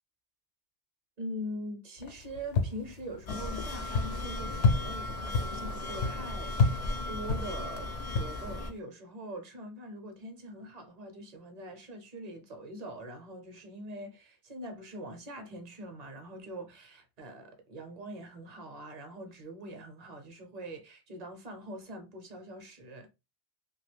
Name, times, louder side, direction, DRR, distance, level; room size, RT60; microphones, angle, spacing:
voice 1, 1.2-23.1, equal, 40° right, 0.7 m, -43 dB
sound 1, 2.0-8.8, left 4 dB, 90° left, 0.9 m, -32 dB
sound 2, 3.3-8.7, left 2 dB, 45° left, 0.4 m, -36 dB
2.8 x 2.3 x 3.3 m
omnidirectional pair, 1.2 m